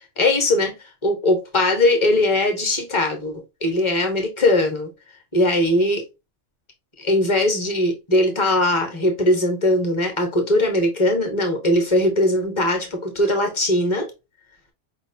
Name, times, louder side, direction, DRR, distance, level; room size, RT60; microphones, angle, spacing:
voice 1, 0.2-0.7 1.0-4.9 5.3-6.0 7.0-14.1, left 1 dB, 25° left, 1.2 m, -20 dB
5.0 x 3.0 x 2.6 m
omnidirectional pair, 1.2 m